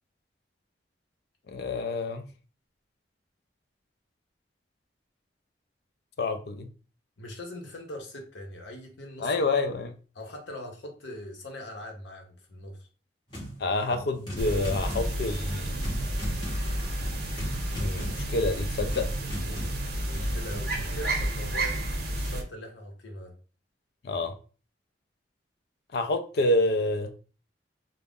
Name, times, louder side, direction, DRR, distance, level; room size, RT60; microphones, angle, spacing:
voice 1, 1.5-2.3 6.2-6.7 9.2-9.9 13.6-15.9 17.7-19.1 24.0-24.3 25.9-27.1, left 2 dB, 60° left, 8 dB, 0.4 m, -28 dB
voice 2, 7.2-9.3 10.1-12.9 19.4-19.7 20.0-21.9 22.1-23.3, left 1 dB, 80° left, 2 dB, 0.8 m, -41 dB
sound 1, 13.3-13.6 13.9-20.6, equal, 25° left, 1.1 m, -39 dB
sound 2, 14.4-22.4, right 1 dB, 55° right, 0.6 m, -31 dB
2.4 x 2.0 x 3.4 m, 0.37 s
head